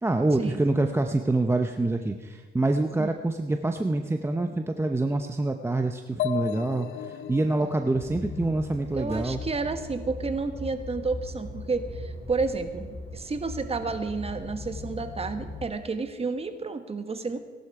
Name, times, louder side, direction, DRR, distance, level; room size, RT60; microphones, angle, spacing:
voice 1, 0.0-9.4, right 2 dB, 10° right, 6 dB, 0.7 m, -26 dB
sound 1, 6.2-9.9, left 10 dB, 75° left, 0.7 m, -36 dB
sound 2, 7.9-15.7, left 2 dB, 30° left, 4.1 m, -39 dB
voice 2, 8.9-17.4, right 4 dB, 30° right, 8 dB, 1.3 m, -31 dB
17.5 x 11.5 x 4.8 m, 1.5 s
cardioid pair, 90°, 20 cm